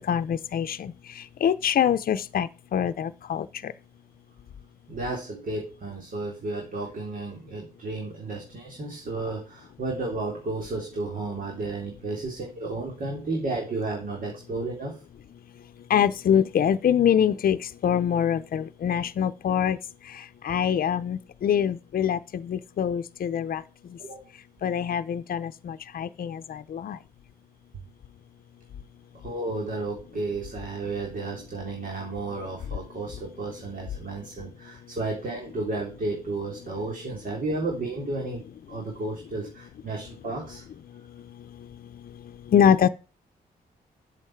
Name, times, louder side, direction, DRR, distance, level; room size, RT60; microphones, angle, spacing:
voice 1, 0.1-0.9 1.4-3.7 15.9-17.6 17.8-19.8 20.4-23.6 24.6-27.0 42.5-42.9, left 8 dB, 60° left, 0.7 m, -24 dB
voice 2, 4.9-15.0 24.0-24.3 29.1-38.4 38.7-40.6, right 2 dB, 55° right, 3.4 m, -32 dB
9.0 x 7.7 x 4.7 m
cardioid pair, 95°, 16 cm